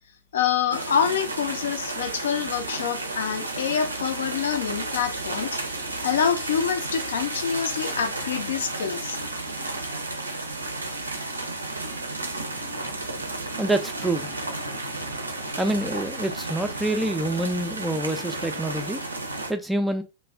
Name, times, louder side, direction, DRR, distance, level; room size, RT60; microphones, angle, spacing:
voice 1, 0.3-5.5 6.0-9.2, left 7 dB, 65° left, 0.5 m, -26 dB
sound 1, 0.7-19.5, right 2 dB, 80° right, 0.4 m, -32 dB
voice 2, 13.6-14.4 15.0-15.1 15.6-19.0 19.5-20.0, right 1 dB, 5° right, 0.3 m, -27 dB
2.3 x 2.1 x 3.3 m
figure-of-eight pair, 90°, 0 cm